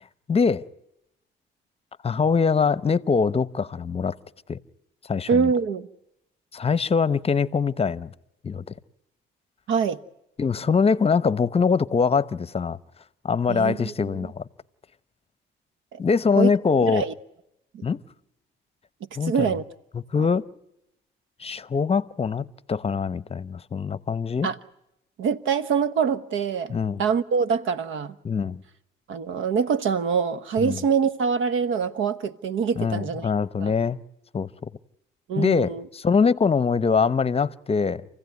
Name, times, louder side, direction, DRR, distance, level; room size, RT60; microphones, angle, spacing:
voice 1, 0.3-0.6 2.0-4.2 4.5-4.6 5.1-5.5 6.5-8.1 8.4-8.7 10.4-12.8 13.2-14.4 16.0-17.0 17.8-18.0 19.2-19.6 19.9-20.5 21.4-24.5 26.7-27.0 28.2-28.6 30.6-30.8 32.8-34.0 34.3-34.7 35.4-38.1, left 5 dB, 30° left, 0.8 m, -23 dB
voice 2, 5.3-5.9 9.7-10.0 13.5-13.9 15.9-16.0 16.3-16.5 16.9-17.1 17.7-17.8 19.2-19.6 24.4-24.6 25.2-28.1 29.1-33.3 33.6-33.7 35.3-35.8, right 6 dB, 80° right, 1.2 m, -24 dB
28.0 x 16.0 x 9.4 m
cardioid pair, 90°, 20 cm